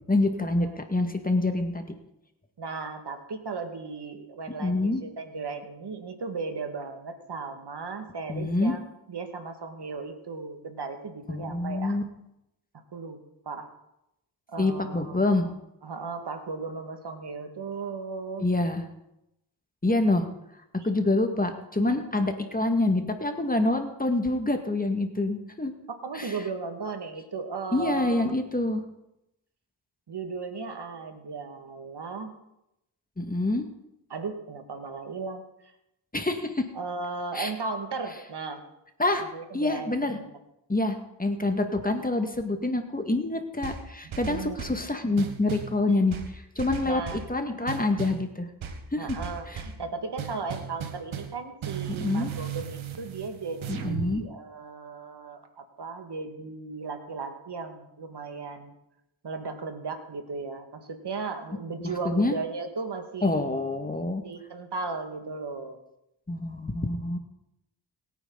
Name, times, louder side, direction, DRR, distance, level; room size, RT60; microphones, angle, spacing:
voice 1, 0.1-1.9 4.6-5.0 8.3-8.7 11.3-12.0 14.6-15.5 18.4-18.8 19.8-20.3 20.7-25.7 26.1-26.3 27.7-28.8 33.2-33.6 36.1-36.6 37.3-37.5 39.0-39.2 39.5-40.2 40.7-48.5 48.9-49.2 49.5-49.6 51.9-52.3 53.7-54.2 61.8-62.3 63.2-64.2 66.3-67.2, left 2 dB, 20° left, 5 dB, 2.0 m, -26 dB
voice 2, 2.6-8.8 9.1-12.0 12.9-13.7 14.5-15.2 15.4-15.5 15.8-18.5 25.9-28.4 30.1-32.3 34.1-35.4 36.7-38.6 39.3-40.2 44.2-44.8 46.9-47.3 49.0-58.7 59.2-63.3 64.2-65.8, right 4 dB, 55° right, 6 dB, 2.2 m, -36 dB
sound 1, 43.6-44.8 45.2-45.8 46.1-47.3 47.7-48.2 48.6-49.8 50.2-51.4 51.6-54.1, right 8 dB, 80° right, 1.7 m, -36 dB
22.0 x 9.4 x 4.1 m, 0.85 s
cardioid pair, 60°, 47 cm